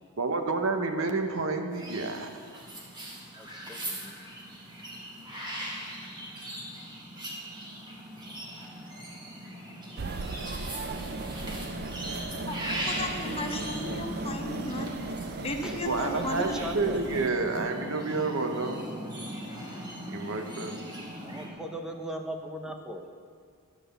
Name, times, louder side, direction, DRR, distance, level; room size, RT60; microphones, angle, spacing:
voice 1, 0.2-2.4 15.8-18.9 20.1-20.8, right 3 dB, 60° right, 6 dB, 0.9 m, -29 dB
sound 1, 1.7-21.5, equal, 20° right, 1.4 m, -39 dB
voice 2, 3.4-4.2 15.6-15.7 16.0-17.0 21.2-23.0, equal, 5° right, 4 dB, 0.6 m, -38 dB
sound 2, 10.0-17.3, right 3 dB, 45° right, 0.5 m, -37 dB
voice 3, 12.5-14.9 15.4-16.6 17.0-17.3, left 1 dB, 25° left, 4 dB, 0.8 m, -35 dB
11.0 x 5.9 x 6.8 m, 2.1 s
head